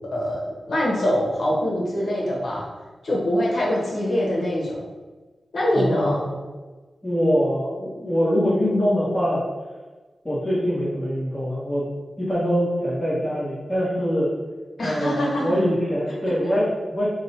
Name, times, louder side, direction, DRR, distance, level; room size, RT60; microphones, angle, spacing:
voice 1, 0.1-2.7 3.0-4.8 5.5-6.2 14.8-15.6, left 1 dB, 60° left, -4 dB, 1.1 m, -23 dB
voice 2, 5.7-6.4 7.0-9.4 10.2-11.8 12.2-14.3 14.8-17.1, equal, 20° left, -9 dB, 1.1 m, -23 dB
3.6 x 2.2 x 4.2 m, 1.3 s
wide cardioid pair, 170°, 0 cm